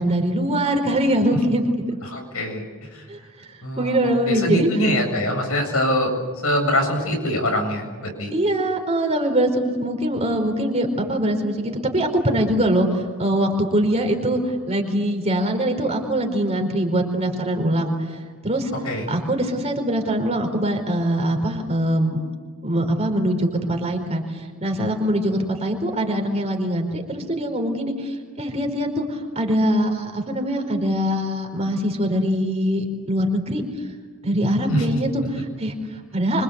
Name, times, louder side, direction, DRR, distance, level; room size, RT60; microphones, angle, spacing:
voice 1, 0.0-2.0 3.1-4.7 8.3-18.7 19.1-22.2 22.6-33.6 34.2-36.4, right 1 dB, 30° right, 3 dB, 4.7 m, -23 dB
voice 2, 2.0-2.6 2.9-3.1 3.6-4.0 4.3-6.1 6.4-8.3 18.8-19.0 34.7-35.0, equal, 75° left, 2 dB, 7.9 m, -23 dB
26.0 x 26.0 x 8.3 m, 1.5 s
head